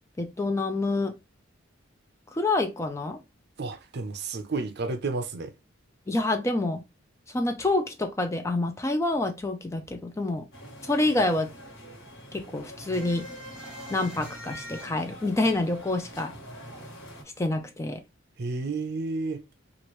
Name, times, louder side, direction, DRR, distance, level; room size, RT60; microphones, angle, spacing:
voice 1, 0.2-1.2 2.3-3.2 6.1-6.8 7.3-10.5 10.8-11.5 12.3-13.3 13.9-16.4 17.4-18.0, left 2 dB, 15° left, 0.4 m, -27 dB
voice 2, 3.6-5.5 18.4-19.4, right 3 dB, 55° right, 0.6 m, -31 dB
sound 1, 10.5-17.2, equal, 65° left, 1.1 m, -45 dB
sound 2, 12.9-16.2 16.5-16.6 16.9-17.9, equal, 5° right, 1.0 m, -44 dB
2.9 x 2.5 x 3.1 m
head